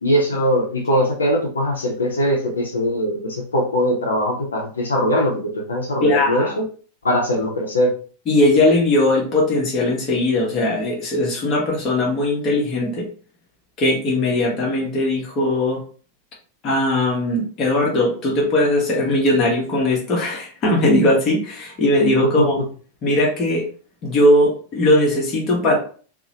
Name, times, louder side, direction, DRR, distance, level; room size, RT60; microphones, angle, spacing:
voice 1, 0.0-6.7 7.0-7.9 22.2-22.5, equal, 70° left, -1 dB, 0.7 m, -21 dB
voice 2, 6.0-6.5 8.3-13.1 13.8-15.8 16.6-22.5 23.0-23.6 24.0-25.8, left 1 dB, 35° left, -2 dB, 0.8 m, -19 dB
2.8 x 2.0 x 2.8 m, 0.41 s
figure-of-eight pair, 90°, 0 cm